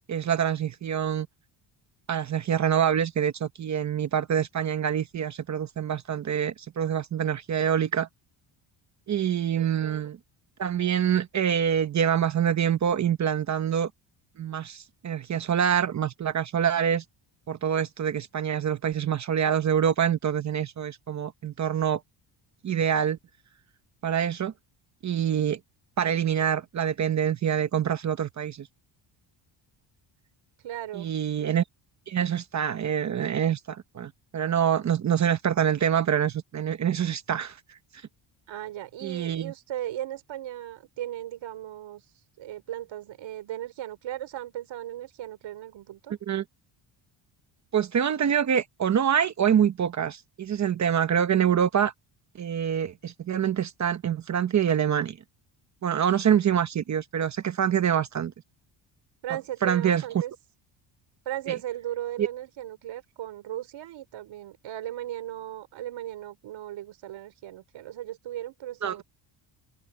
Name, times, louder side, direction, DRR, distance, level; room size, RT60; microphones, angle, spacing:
voice 1, 0.1-1.3 2.1-8.1 9.1-10.2 10.6-13.9 14.4-17.0 17.5-22.0 22.6-23.2 24.0-24.5 25.0-25.6 26.0-28.7 30.9-31.6 32.1-37.6 39.0-39.5 46.3-46.4 47.7-51.9 52.4-55.2 55.8-58.3 59.6-60.0 61.5-61.6 62.2-62.3 68.8-69.0, right 8 dB, 35° right, 0.9 m, -25 dB
voice 2, 9.5-10.1 30.6-31.2 38.5-42.0 42.4-46.1 59.2-60.3 61.3-69.0, right 12 dB, 70° right, 5.2 m, -37 dB
open air
cardioid pair, 165°, 48 cm